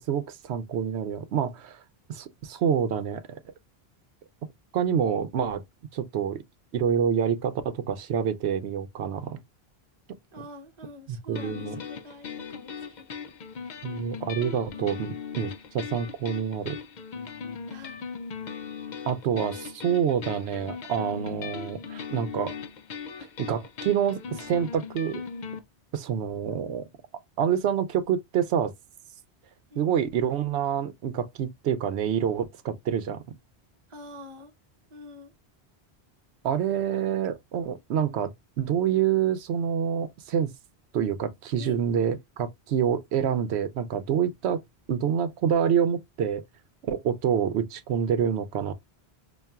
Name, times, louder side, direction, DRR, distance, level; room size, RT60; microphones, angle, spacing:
voice 1, 0.1-1.8 2.1-3.4 4.7-5.6 5.9-6.4 6.7-9.4 11.1-11.8 13.8-16.8 19.1-22.6 23.4-25.2 25.9-26.8 27.4-28.7 29.8-33.2 36.4-40.5 40.9-44.6 44.9-46.4 46.8-48.7, right 8 dB, 85° right, 0.9 m, -27 dB
voice 2, 10.3-13.1 17.7-18.0 26.5-26.8 29.7-29.9 33.9-34.5 34.9-35.3 41.6-41.8, left 1 dB, 30° right, 0.8 m, -46 dB
sound 1, 11.4-25.6, left 6 dB, 55° left, 0.6 m, -39 dB
5.5 x 2.5 x 2.3 m
omnidirectional pair, 1.1 m